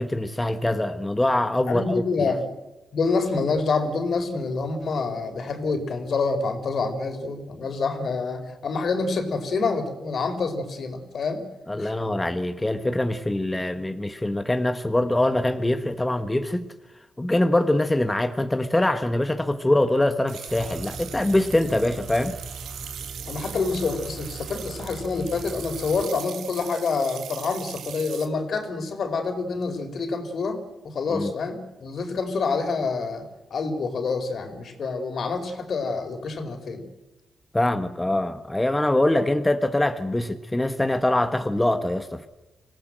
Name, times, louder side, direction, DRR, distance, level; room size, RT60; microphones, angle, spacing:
voice 1, 0.0-1.8 11.7-16.7 17.2-22.4 31.1-31.3 37.5-42.3, left 1 dB, 15° left, 1.3 m, -23 dB
voice 2, 1.6-2.5 2.9-11.5 11.8-11.9 23.3-36.9, left 4 dB, 60° left, 4.4 m, -27 dB
sound 1, 20.3-28.3, right 9 dB, 90° right, 2.3 m, -40 dB
sound 2, 20.5-26.0, right 2 dB, 50° right, 4.3 m, -40 dB
26.0 x 17.5 x 7.8 m
cardioid pair, 85°, 0 cm